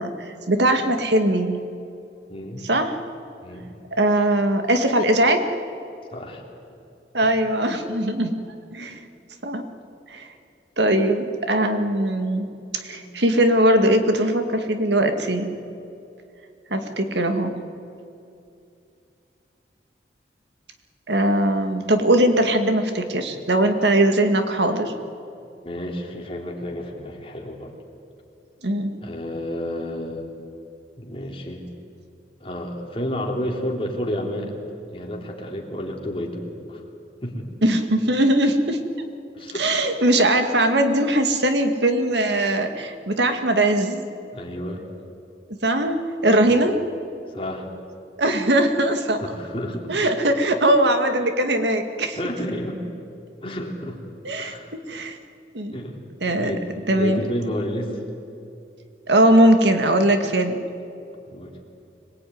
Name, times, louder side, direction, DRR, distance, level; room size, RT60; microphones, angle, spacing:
voice 1, 0.0-1.6 2.6-2.9 4.0-5.4 7.1-8.4 8.7-8.9 9.4-9.6 10.1-10.3 10.8-12.5 12.7-15.5 16.7-17.6 21.1-24.9 28.6-28.9 37.6-38.8 39.5-44.0 45.6-46.8 48.2-49.2 49.9-52.2 54.2-55.2 55.5-55.8 56.2-56.5 56.9-57.2 59.1-60.6, right 1 dB, 80° right, 6 dB, 2.1 m, -20 dB
voice 2, 2.3-2.6 3.4-3.7 6.1-6.4 7.2-7.3 8.8-8.9 12.9-13.1 25.6-27.7 29.0-30.3 31.0-31.6 32.4-34.6 34.9-36.8 37.2-37.5 39.3-39.7 40.4-40.5 44.3-44.8 46.5-46.6 47.3-47.7 49.2-49.9 52.1-52.8 53.4-54.0 54.4-54.7 55.7-58.0 61.3-61.5, left 1 dB, 30° left, 0 dB, 3.4 m, -31 dB
25.0 x 20.0 x 9.5 m, 2.6 s
head